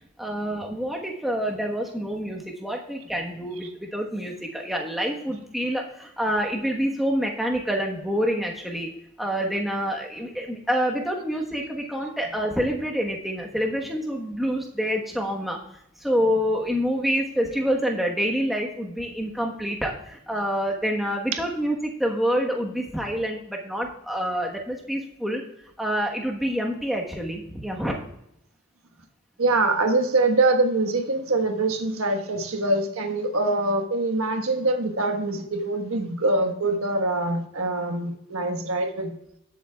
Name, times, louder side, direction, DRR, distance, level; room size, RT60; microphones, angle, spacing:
voice 1, 0.2-8.9 9.2-15.6 16.0-25.4 25.8-27.9, equal, ahead, 0 dB, 1.2 m, -27 dB
voice 2, 29.4-39.2, right 2 dB, 75° right, 5 dB, 1.3 m, -24 dB
19.0 x 7.5 x 2.3 m, 0.78 s
head